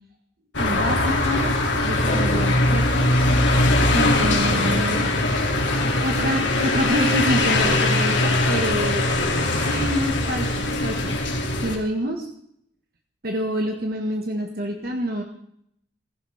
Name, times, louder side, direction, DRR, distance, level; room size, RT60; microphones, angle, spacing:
sound 1, 0.5-11.8, left 2 dB, 80° left, 2.9 m, -21 dB
voice 1, 0.6-1.5 1.8-3.2 3.9-5.2 5.6-9.1 9.5-11.2 11.6-12.3 13.2-15.2, equal, 50° right, 2 dB, 1.7 m, -27 dB
17.0 x 15.5 x 3.6 m, 0.70 s
head